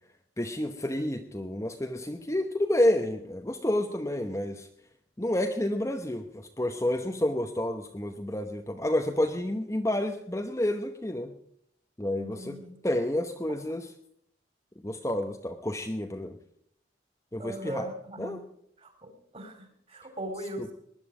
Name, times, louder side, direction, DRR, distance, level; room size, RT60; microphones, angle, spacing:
voice 1, 0.4-4.7 5.2-11.3 12.0-12.6 12.8-13.9 14.8-16.4 17.3-17.9 18.2-18.4 20.6-20.7, left 1 dB, 15° left, 5 dB, 0.9 m, -29 dB
voice 2, 12.2-12.7 17.4-18.4 18.8-20.7, right 1 dB, 30° right, 7 dB, 3.1 m, -39 dB
20.0 x 11.0 x 5.0 m, 0.69 s
head